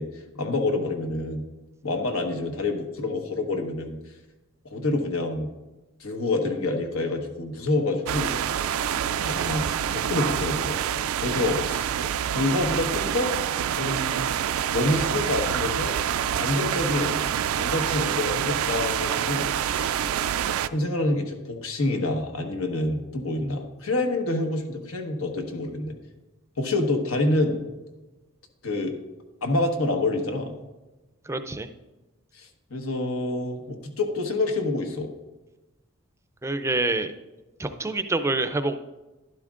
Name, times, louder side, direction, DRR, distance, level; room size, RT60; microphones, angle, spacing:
voice 1, 0.0-1.5 1.8-4.0 4.6-5.5 6.0-8.6 9.2-9.6 9.9-10.8 11.2-11.9 12.3-13.3 13.7-14.3 14.7-15.9 16.4-17.2 17.5-20.2 20.7-25.9 26.6-27.6 28.6-29.0 29.4-30.5 32.3-35.1, left 2 dB, 90° left, 4 dB, 1.3 m, -27 dB
sound 1, 8.1-20.7, right 9 dB, 80° right, 0.3 m, -27 dB
voice 2, 31.3-31.7 36.4-37.1 37.6-38.7, right 2 dB, 15° right, 9 dB, 0.4 m, -26 dB
12.0 x 11.0 x 2.5 m, 1.1 s
head